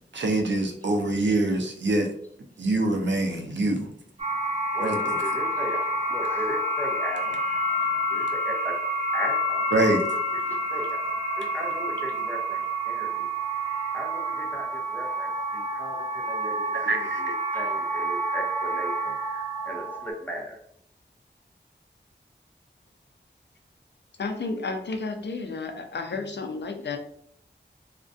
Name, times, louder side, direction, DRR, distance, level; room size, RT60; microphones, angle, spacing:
voice 1, 0.1-2.1 2.6-3.9 4.8-5.2 9.7-10.0 16.7-17.2, right 2 dB, 80° right, 3 dB, 0.5 m, -25 dB
sound 1, 4.2-20.1, right 1 dB, 35° right, 0.8 m, -28 dB
voice 2, 4.7-7.8 8.1-8.8 9.1-9.7 10.3-11.0 11.4-13.3 13.9-20.6, equal, 10° left, 0 dB, 0.6 m, -37 dB
voice 3, 24.2-27.0, left 3 dB, 70° left, 5 dB, 0.4 m, -32 dB
2.3 x 2.1 x 2.5 m, 0.68 s
wide cardioid pair, 45°, 19 cm